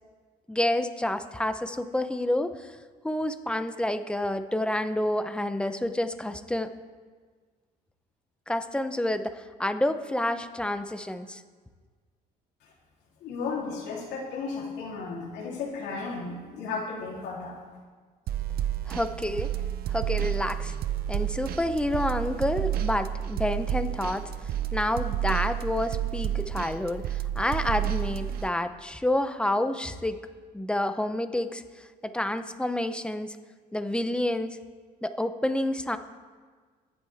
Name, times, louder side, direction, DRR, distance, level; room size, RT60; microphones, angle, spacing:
voice 1, 0.5-2.7 3.0-6.7 8.5-11.4 18.9-19.5 19.9-20.7 21.1-24.3 24.7-30.2 30.5-31.6 32.0-33.4 33.7-34.6 35.0-36.0, left 1 dB, 5° left, 10 dB, 0.7 m, -29 dB
voice 2, 13.2-17.5, left 4 dB, 80° left, -3 dB, 3.5 m, -34 dB
sound 1, 18.3-28.5, right 11 dB, 65° right, 0.7 m, -30 dB
23.0 x 7.9 x 3.6 m, 1.5 s
cardioid pair, 110°, 17 cm